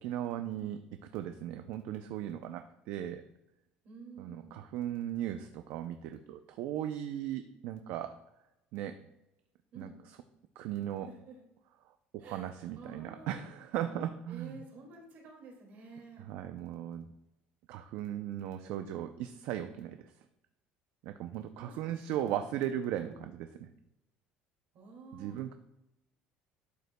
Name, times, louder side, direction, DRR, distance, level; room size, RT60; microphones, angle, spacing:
voice 1, 0.0-0.8 1.1-3.2 4.2-8.1 8.7-9.0 9.8-9.9 10.6-11.1 12.1-14.6 16.2-17.1 17.7-20.0 21.0-23.7 25.1-25.5, right 11 dB, 70° right, 8 dB, 0.4 m, -37 dB
voice 2, 3.8-4.6 9.7-10.0 11.0-11.4 12.2-13.4 14.3-16.3 21.6-22.4 23.1-23.2 24.7-25.4, right 4 dB, 55° right, 0 dB, 2.2 m, -51 dB
11.5 x 5.4 x 2.2 m, 0.91 s
cardioid pair, 145°, 4 cm